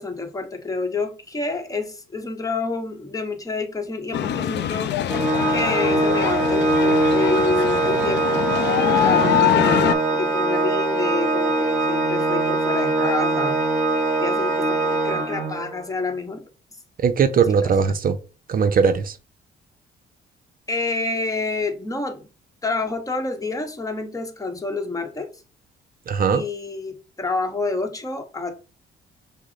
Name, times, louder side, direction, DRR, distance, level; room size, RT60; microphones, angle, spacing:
voice 1, 0.0-4.9 5.5-8.6 9.0-13.6 14.2-16.4 17.4-17.7 20.7-22.3 22.6-25.3 26.3-28.5, left 3 dB, 15° left, 1.0 m, -28 dB
sound 1, 4.1-9.9, left 11 dB, 65° left, 0.5 m, -23 dB
Organ, 5.1-15.8, right 2 dB, ahead, 2.7 m, -22 dB
voice 2, 17.0-18.2 18.5-19.2 26.1-26.4, right 6 dB, 45° right, 0.6 m, -19 dB
5.9 x 2.1 x 4.0 m
cardioid pair, 90°, 20 cm